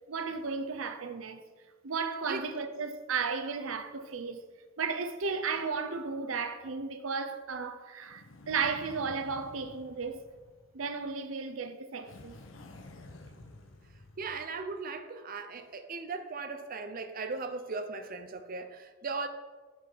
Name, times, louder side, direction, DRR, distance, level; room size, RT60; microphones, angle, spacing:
voice 1, 0.1-1.4 1.8-4.4 4.8-10.3 10.7-12.4, right 5 dB, 90° right, 0.7 m, -34 dB
sound 1, 8.0-11.1 12.0-14.8, left 2 dB, 70° left, 1.0 m, -51 dB
voice 2, 14.2-19.3, right 4 dB, 45° right, 0.6 m, -38 dB
9.7 x 6.1 x 5.0 m
head